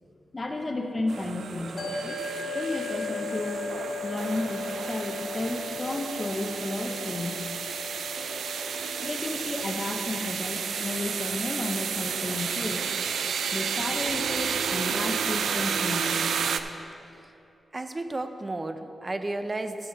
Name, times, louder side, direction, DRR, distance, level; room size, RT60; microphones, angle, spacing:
voice 1, 0.3-2.2 2.5-3.7 4.0-7.3 9.0-12.9 13.5-16.3, left 2 dB, 30° left, 3 dB, 0.9 m, -33 dB
sound 1, 1.1-16.6, right 6 dB, 90° right, 0.4 m, -31 dB
sound 2, 1.8-14.3, left 4 dB, 50° left, 1.8 m, -39 dB
voice 2, 17.7-19.9, right 2 dB, 30° right, 8 dB, 0.6 m, -33 dB
14.5 x 5.7 x 4.0 m, 2.8 s
cardioid pair, 85°, 0 cm